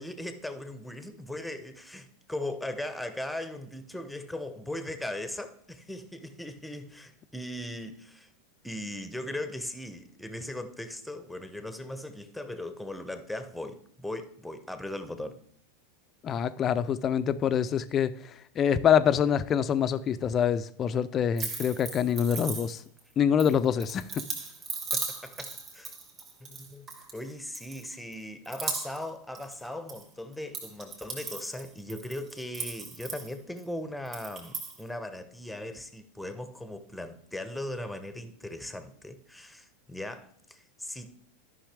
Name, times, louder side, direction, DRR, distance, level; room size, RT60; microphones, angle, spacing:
voice 1, 0.0-8.3 8.6-15.4 24.9-26.0 26.4-26.9 27.1-41.1, left 1 dB, 5° left, 0.9 m, -38 dB
voice 2, 16.2-18.1 18.6-22.8 23.2-24.2, left 8 dB, 35° left, 0.5 m, -25 dB
sound 1, 21.4-23.0 23.4-27.2 27.5-28.1 28.4-29.1 29.3-30.0 30.3-33.6 34.1-34.8, right 4 dB, 35° right, 2.4 m, -37 dB
13.0 x 5.5 x 3.4 m
hypercardioid pair, 95°, 0 cm